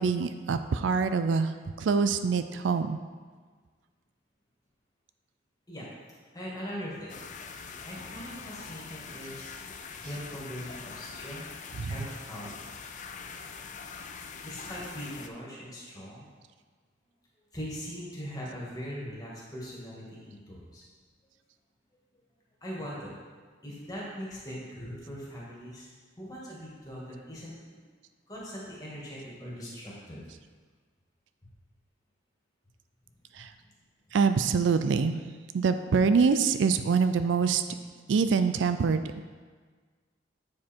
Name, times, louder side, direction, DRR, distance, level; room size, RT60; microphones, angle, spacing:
voice 1, 0.0-3.0 11.7-12.1 33.3-33.5 34.1-35.2 35.5-37.6 38.1-39.0, right 5 dB, 75° right, 10 dB, 0.4 m, -25 dB
voice 2, 6.3-9.5 9.9-11.6 11.9-12.8 14.4-16.3 17.5-20.8 22.6-23.2 23.6-25.9 26.2-27.5 28.3-30.2, equal, 20° left, -6 dB, 1.9 m, -41 dB
sound 1, 7.1-15.3, left 5 dB, 40° left, 0.4 m, -43 dB
8.2 x 4.9 x 4.5 m, 1.5 s
head